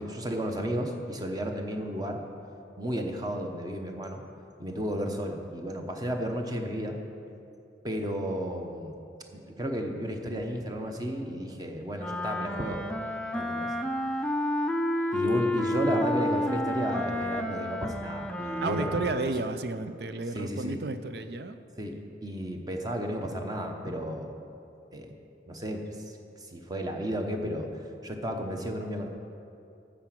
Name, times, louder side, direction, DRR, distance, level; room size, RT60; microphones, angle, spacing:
voice 1, 0.0-2.2 2.8-4.2 4.6-7.0 7.8-9.0 9.3-12.8 13.3-13.7 15.1-18.9 20.3-20.8 21.8-24.4 24.9-25.1 25.5-27.7 28.0-29.1, equal, 20° right, 3 dB, 0.9 m, -33 dB
Wind instrument woodwind instrument, 12.0-19.4, left 1 dB, 5° left, 0.4 m, -30 dB
voice 2, 18.6-21.6, right 3 dB, 65° right, 10 dB, 0.5 m, -32 dB
13.0 x 4.9 x 7.5 m, 2.7 s
head